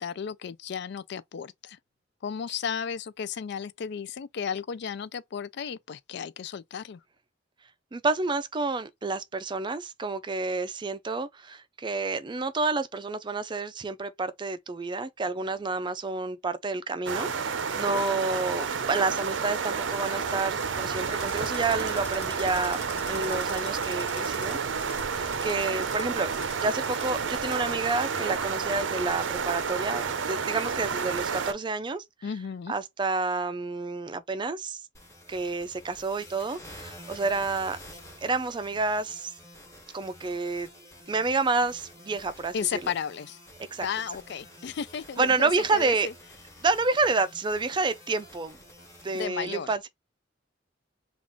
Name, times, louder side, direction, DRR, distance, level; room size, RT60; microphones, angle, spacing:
voice 1, 0.0-1.8 2.2-7.0 32.2-32.7 42.5-43.4 43.8-46.1 49.1-49.8, left 7 dB, 65° left, 0.4 m, -34 dB
voice 2, 7.9-24.6 25.2-26.3 26.6-32.0 32.7-34.8 35.3-37.8 38.2-39.3 39.9-40.7 41.1-42.9 43.7-43.9 45.2-46.1 46.6-48.6 49.0-49.8, right 3 dB, 25° right, 0.4 m, -29 dB
sound 1, 17.1-31.5, right 5 dB, 80° right, 0.6 m, -30 dB
sound 2, 21.1-27.7, left 4 dB, 40° left, 1.1 m, -46 dB
sound 3, 34.9-49.2, left 1 dB, 15° left, 1.2 m, -49 dB
3.5 x 2.4 x 3.7 m
head